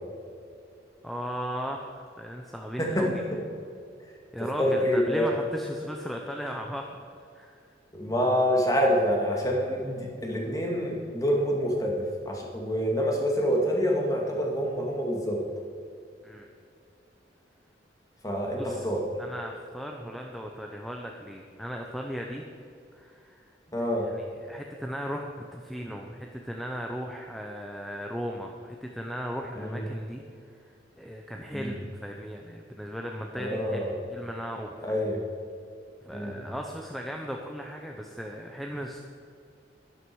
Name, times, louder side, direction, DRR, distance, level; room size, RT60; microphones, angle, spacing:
voice 1, 1.0-3.2 4.3-7.0 7.3-7.6 16.2-16.5 18.6-18.9 19.2-22.4 22.9-23.5 23.8-23.9 24.1-30.2 30.5-33.8 34.1-35.0 36.0-39.0, equal, ahead, 1 dB, 0.7 m, -37 dB
voice 2, 4.4-5.3 7.9-11.9 12.3-15.4 18.2-19.0 23.7-24.1 29.6-29.9 31.5-31.8 33.4-34.0 34.8-35.2 36.1-36.3, equal, 20° left, -1 dB, 2.1 m, -26 dB
11.5 x 11.5 x 4.7 m, 2.5 s
head